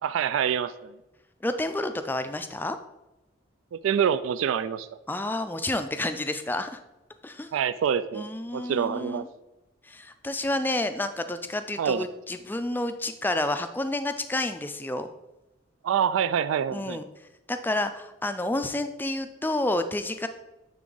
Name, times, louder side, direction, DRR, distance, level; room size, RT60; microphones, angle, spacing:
voice 1, 0.0-0.9 3.7-4.9 7.5-8.3 8.5-9.2 11.8-12.0 15.8-17.0, right 8 dB, 85° right, 14 dB, 0.3 m, -26 dB
voice 2, 1.4-2.8 5.1-6.8 7.2-7.5 8.1-9.3 9.8-15.1 16.7-17.0 17.5-20.3, left 1 dB, 10° left, 9 dB, 0.3 m, -30 dB
9.4 x 3.7 x 3.9 m, 0.95 s
head